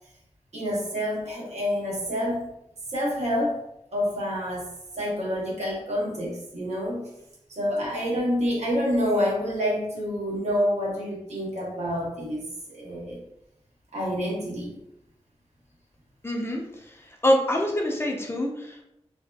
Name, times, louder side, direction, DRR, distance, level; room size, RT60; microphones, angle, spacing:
voice 1, 0.5-2.5 2.9-3.6 3.9-4.7 4.9-7.1 7.5-13.2 13.9-14.8, equal, 80° right, -3 dB, 0.8 m, -28 dB
voice 2, 16.2-16.6 17.2-18.8, left 1 dB, 20° left, 0 dB, 0.4 m, -24 dB
2.5 x 2.2 x 2.2 m, 0.82 s
wide cardioid pair, 105°, 11 cm